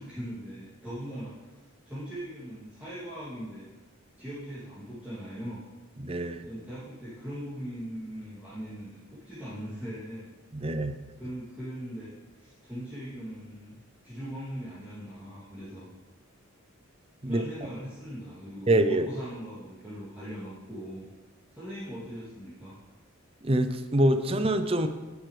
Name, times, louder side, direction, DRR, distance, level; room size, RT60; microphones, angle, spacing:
voice 1, 0.0-1.6 1.8-3.7 4.2-5.6 6.5-10.3 11.2-12.1 12.4-13.7 14.0-15.8 17.2-21.0 21.5-22.7, equal, 10° right, -13 dB, 2.8 m, -40 dB
voice 2, 6.0-6.4 10.5-10.9 17.2-17.4 18.7-19.1 23.4-24.9, right 1 dB, 25° right, 9 dB, 0.6 m, -25 dB
11.0 x 9.8 x 3.4 m, 1.2 s
head